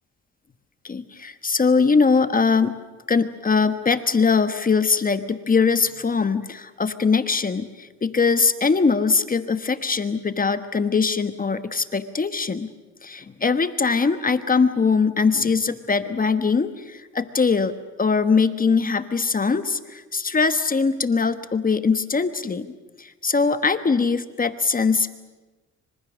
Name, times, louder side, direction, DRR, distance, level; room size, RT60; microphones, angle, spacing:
voice 1, 0.8-2.8 3.1-12.7 13.0-17.7 18.0-22.7 23.0-25.1, left 5 dB, 30° left, 11 dB, 1.2 m, -21 dB
27.0 x 25.5 x 6.3 m, 1.2 s
cardioid pair, 90°, 30 cm